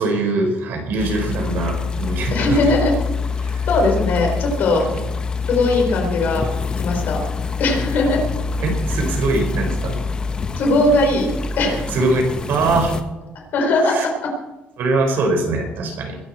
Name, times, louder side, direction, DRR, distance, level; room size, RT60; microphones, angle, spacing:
voice 1, 0.0-2.6 3.4-3.7 4.9-5.0 8.6-10.0 11.9-13.0 13.9-14.0 14.8-16.2, right 2 dB, 65° right, 2 dB, 4.8 m, -22 dB
sound 1, 1.0-13.0, left 4 dB, 25° left, 0.9 m, -25 dB
voice 2, 2.3-2.9 3.7-4.9 5.5-6.4 6.8-7.2 7.6-8.2 10.6-11.3 11.6-11.8 13.3-14.3, left 2 dB, 55° left, 2 dB, 4.2 m, -19 dB
21.5 x 12.5 x 4.4 m, 1.0 s
cardioid pair, 165°, 4 cm